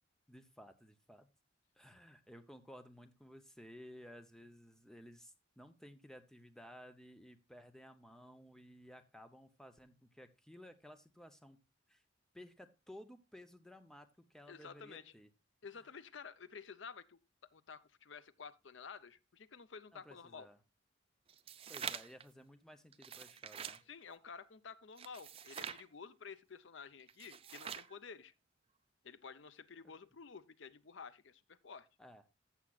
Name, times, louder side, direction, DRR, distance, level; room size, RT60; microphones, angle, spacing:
voice 1, 0.3-1.3 1.8-11.6 11.9-12.0 12.3-15.3 19.9-20.6 21.7-23.8 29.8-29.9 32.0-32.2, equal, 5° left, 0.7 m, -56 dB
voice 2, 14.5-15.1 15.6-17.2 17.5-20.5 23.9-28.3 29.0-31.9, left 5 dB, 65° left, 0.6 m, -52 dB
sound 1, 21.3-22.2 22.9-23.8 25.0-25.8 27.1-27.9, right 7 dB, 30° right, 0.4 m, -45 dB
14.5 x 7.3 x 2.4 m
head